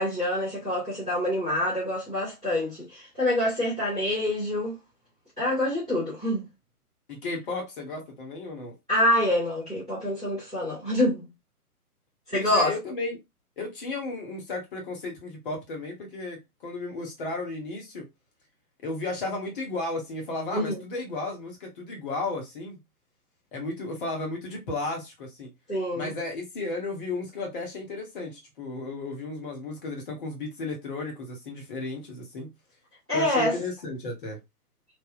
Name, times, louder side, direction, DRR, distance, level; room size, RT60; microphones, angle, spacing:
voice 1, 0.0-4.8 5.4-6.5 8.9-11.3 12.3-12.7 20.5-20.8 25.7-26.1 33.1-33.5, left 1 dB, 5° right, 0.4 m, -26 dB
voice 2, 7.1-8.8 12.3-13.2 13.6-18.1 18.8-22.8 23.5-25.5 25.9-32.5 33.1-34.4, left 2 dB, 35° left, 1.2 m, -34 dB
3.4 x 2.5 x 2.5 m
figure-of-eight pair, 125°, 46 cm